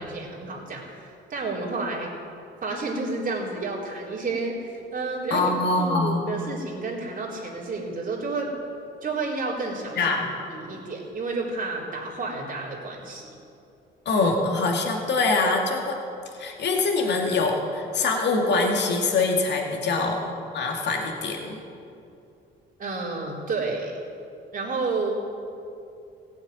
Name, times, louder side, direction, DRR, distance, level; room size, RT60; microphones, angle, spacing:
voice 1, 0.0-2.1 2.6-5.5 5.8-8.5 9.0-10.2 10.5-13.3 22.8-24.0 24.5-25.2, right 3 dB, 45° right, -3 dB, 4.0 m, -30 dB
voice 2, 5.3-6.3 10.0-10.3 14.1-16.0 16.4-21.6, left 3 dB, 60° left, 1 dB, 2.3 m, -24 dB
16.5 x 7.1 x 9.0 m, 2.6 s
cardioid pair, 90°, 20 cm